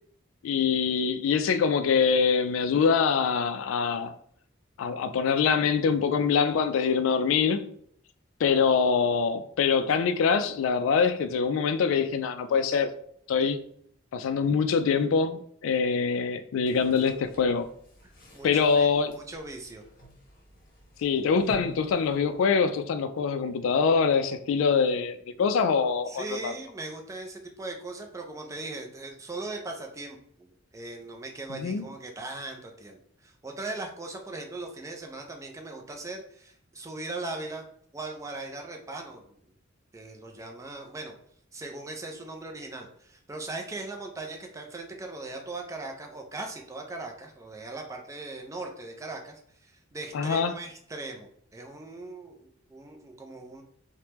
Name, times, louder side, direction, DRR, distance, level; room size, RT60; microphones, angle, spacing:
voice 1, 0.4-4.1 4.8-7.7 8.4-12.9 13.3-13.6 14.1-17.7 18.4-19.2 21.0-26.5 31.5-31.8 50.1-50.5, left 5 dB, 80° left, 0.3 m, -24 dB
sound 1, 16.7-22.8, left 1 dB, 45° left, 0.8 m, -49 dB
voice 2, 18.0-18.9 19.2-19.8 26.1-37.6 37.9-39.4 39.9-41.1 41.5-53.6, right 2 dB, 15° right, 0.4 m, -39 dB
3.3 x 2.1 x 2.9 m
head